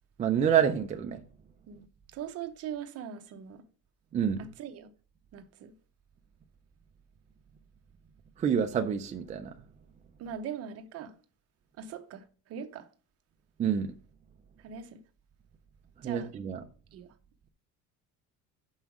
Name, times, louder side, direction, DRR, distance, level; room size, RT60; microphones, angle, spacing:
voice 1, 0.2-1.2 4.1-4.5 8.4-9.5 13.6-13.9 16.0-16.6, right 8 dB, 20° right, 0.4 m, -27 dB
voice 2, 1.7-3.6 4.4-4.9 5.3-5.7 10.2-11.2 11.8-12.9 14.6-15.0 16.0-16.3 16.9-17.1, right 8 dB, 45° right, 0.9 m, -41 dB
7.1 x 5.5 x 6.0 m
cardioid pair, 170°, 32 cm